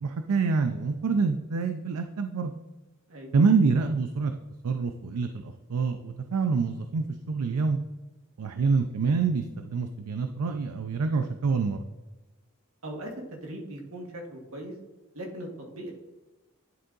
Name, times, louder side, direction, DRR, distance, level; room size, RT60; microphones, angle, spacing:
voice 1, 0.0-2.5 3.3-4.3 4.6-7.8 8.4-11.8, right 4 dB, 90° right, 7 dB, 0.4 m, -26 dB
voice 2, 12.8-14.7 15.1-15.9, right 1 dB, 70° right, 1 dB, 1.4 m, -39 dB
10.5 x 3.7 x 3.9 m, 1.1 s
head